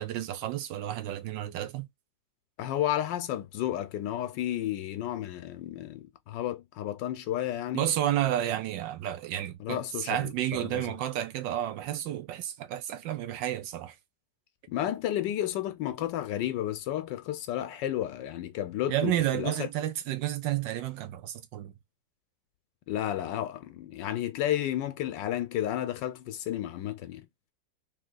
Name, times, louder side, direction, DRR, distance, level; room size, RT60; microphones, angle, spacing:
voice 1, 0.0-1.9 7.7-13.9 18.9-21.7, right 12 dB, 80° right, 1.3 m, -31 dB
voice 2, 2.6-7.9 9.6-10.9 14.7-19.7 22.9-27.2, left 12 dB, 80° left, 1.3 m, -32 dB
3.9 x 3.0 x 3.8 m
omnidirectional pair, 2.0 m